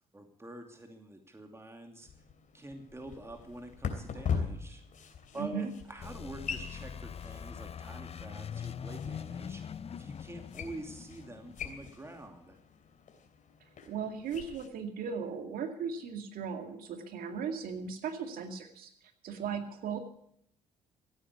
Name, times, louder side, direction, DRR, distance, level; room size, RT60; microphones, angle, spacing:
voice 1, 0.1-2.1 2.5-4.8 5.3-12.6, right 1 dB, 15° right, 4 dB, 2.6 m, -46 dB
sound 1, 2.0-14.7, left 6 dB, 60° left, 3.0 m, -42 dB
voice 2, 5.3-5.7 13.9-18.9 19.2-20.0, right 6 dB, 70° right, 6 dB, 2.3 m, -37 dB
sound 2, 6.0-12.6, left 7 dB, 40° left, 0.6 m, -43 dB
15.5 x 9.1 x 8.3 m, 0.69 s
hypercardioid pair, 55°, 15 cm